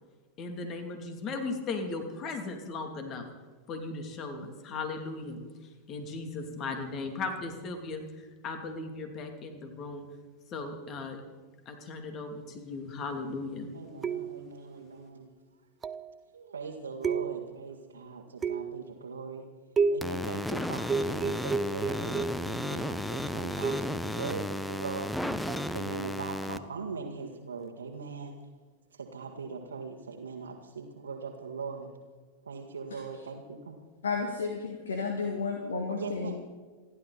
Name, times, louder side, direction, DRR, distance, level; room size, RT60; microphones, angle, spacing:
voice 1, 0.4-3.3 3.7-5.4 5.9-10.0 10.5-11.2 11.6-13.7, left 3 dB, 35° left, 5 dB, 2.9 m, -37 dB
voice 2, 13.7-15.3 16.3-19.5 19.9-25.1 25.7-28.4 28.9-31.9 32.5-33.8 35.9-36.4, right 5 dB, 70° right, -1 dB, 1.7 m, -40 dB
sound 1, 14.0-14.6 15.8-16.2 17.0-17.6 18.4-18.9 19.8-20.2 20.9-22.5 23.6-24.0 25.5-25.7, right 5 dB, 20° right, 0.7 m, -31 dB
sound 2, 20.0-26.6, left 1 dB, 5° left, 0.9 m, -34 dB
voice 3, 34.0-36.4, left 4 dB, 70° left, 3 dB, 1.9 m, -32 dB
28.0 x 12.0 x 4.2 m, 1.4 s
figure-of-eight pair, 90°, 0 cm